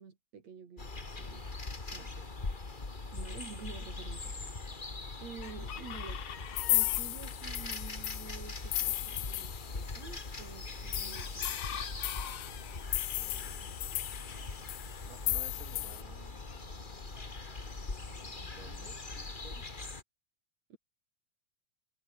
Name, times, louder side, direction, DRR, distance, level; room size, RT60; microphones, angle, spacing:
voice 1, 0.0-1.5 1.8-2.1 3.1-4.8 5.2-6.2 6.7-11.8 20.7-20.8, right 6 dB, 60° right, 4.3 m, -49 dB
sound 1, 0.8-20.0, left 3 dB, 20° left, 1.7 m, -41 dB
voice 2, 2.0-2.3 13.1-13.9 15.0-16.4 18.2-19.6, right 3 dB, 25° right, 6.0 m, -54 dB
Chicken rooster, 3.1-19.7, left 9 dB, 55° left, 2.4 m, -50 dB
sound 2, 6.6-10.0 10.4-10.5 10.7-16.0, left 18 dB, 80° left, 1.4 m, -36 dB
omnidirectional pair, 3.4 m